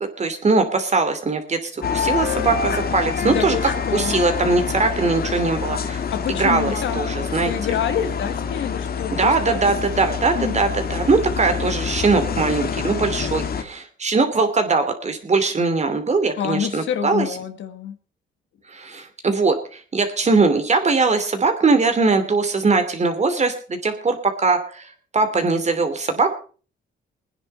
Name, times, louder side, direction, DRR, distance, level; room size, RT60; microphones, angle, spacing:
voice 1, 0.2-3.6 3.9-6.0 6.3-7.5 9.1-17.3 18.7-24.9 25.1-26.3, right 4 dB, 35° right, 7 dB, 2.8 m, -21 dB
sound 1, 1.8-13.6, left 6 dB, 50° left, 1.7 m, -26 dB
voice 2, 3.2-4.1 6.1-7.0 7.4-9.6 10.3-10.6 16.4-18.0, left 9 dB, 75° left, 9 dB, 1.6 m, -27 dB
21.0 x 9.9 x 4.3 m, 0.39 s
cardioid pair, 90°, 20 cm